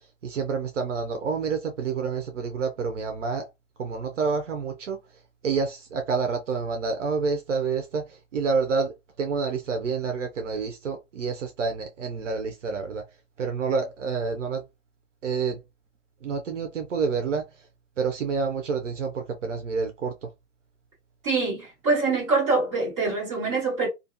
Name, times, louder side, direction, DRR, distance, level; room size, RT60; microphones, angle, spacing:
voice 1, 0.2-3.5 3.8-5.0 5.4-8.9 9.2-13.0 13.4-14.6 15.2-15.6 16.2-17.4 18.0-20.3, right 5 dB, 70° right, 0.7 m, -28 dB
voice 2, 21.2-23.9, right 3 dB, 25° right, 1.5 m, -24 dB
2.6 x 2.1 x 2.6 m
hypercardioid pair, 180°, 38 cm